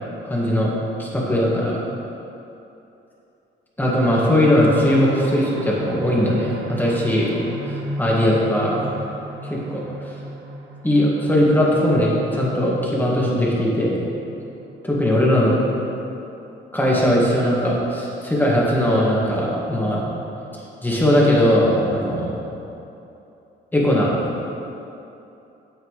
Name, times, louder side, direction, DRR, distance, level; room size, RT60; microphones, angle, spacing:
voice 1, 0.2-0.7 1.0-1.7 3.8-7.4 7.7-8.9 9.4-10.1 10.8-14.0 14.8-15.6 16.7-20.0 20.5-22.4 23.7-24.1, left 1 dB, 10° left, -5 dB, 2.0 m, -19 dB
sound 1, 3.8-17.3 17.8-17.9 18.2-18.3, right 1 dB, 70° right, 0.9 m, -36 dB
9.3 x 7.6 x 3.3 m, 2.8 s
cardioid pair, 90°, 20 cm